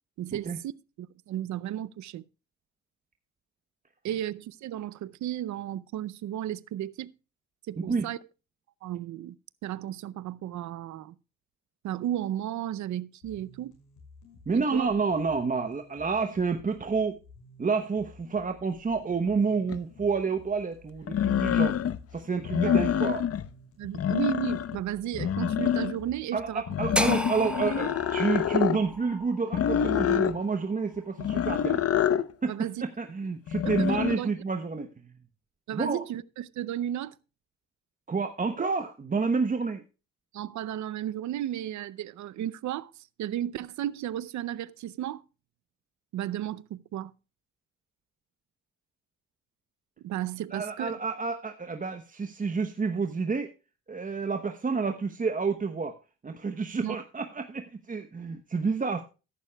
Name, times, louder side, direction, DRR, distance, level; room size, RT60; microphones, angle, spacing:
voice 1, 0.2-0.7 1.0-2.3 4.0-7.1 7.7-8.2 8.8-9.4 9.6-11.1 11.8-13.8 14.5-14.9 22.6-22.8 23.8-26.6 32.4-32.8 33.6-34.3 35.7-37.2 40.3-45.2 46.1-47.1 50.0-51.0 56.8-57.0, right 11 dB, 70° right, 0.7 m, -34 dB
sound 1, 13.2-29.2, left 2 dB, 80° left, 5.7 m, -54 dB
voice 2, 14.5-17.2 17.6-21.8 22.1-23.3 26.3-31.8 32.4-32.5 32.8-35.1 35.7-36.0 38.1-39.8 50.5-53.5 53.9-55.9 56.2-59.0, right 4 dB, 25° right, 1.0 m, -29 dB
sound 2, 19.7-19.8 21.1-22.0 22.4-23.5 23.8-24.8 25.1-26.1 26.7-28.8 29.5-30.4 31.2-32.3 33.5-34.2, left 9 dB, 50° left, 0.9 m, -26 dB
sound 3, 26.9-31.1, right 1 dB, 5° right, 1.0 m, -34 dB
14.0 x 11.5 x 2.3 m
cardioid pair, 90°, 30 cm